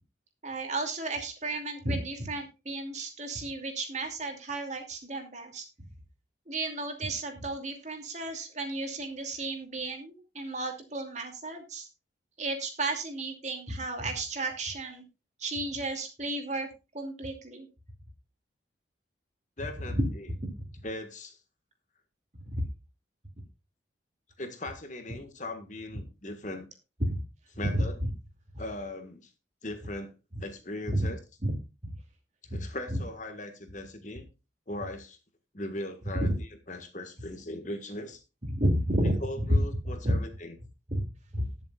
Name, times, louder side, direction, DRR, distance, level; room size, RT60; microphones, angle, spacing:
voice 1, 0.4-5.6 6.5-11.9 12.4-15.0 15.4-16.7 16.9-17.7 19.9-20.1 20.4-20.5 22.4-22.6 27.0-27.2 27.7-28.1 30.9-31.1 31.4-31.5 31.8-31.9 32.9-33.0 36.1-36.4 38.4-39.6 40.0-40.1 40.9-41.5, right 1 dB, 40° right, 4 dB, 2.6 m, -32 dB
voice 2, 19.6-20.3 20.8-21.4 24.4-26.7 27.6-28.0 28.6-29.3 29.6-30.1 30.4-31.2 32.5-34.3 34.7-35.2 35.5-36.3 36.7-38.2 39.0-40.5, left 1 dB, 40° left, 7 dB, 1.7 m, -39 dB
20.0 x 7.1 x 2.4 m, 0.28 s
head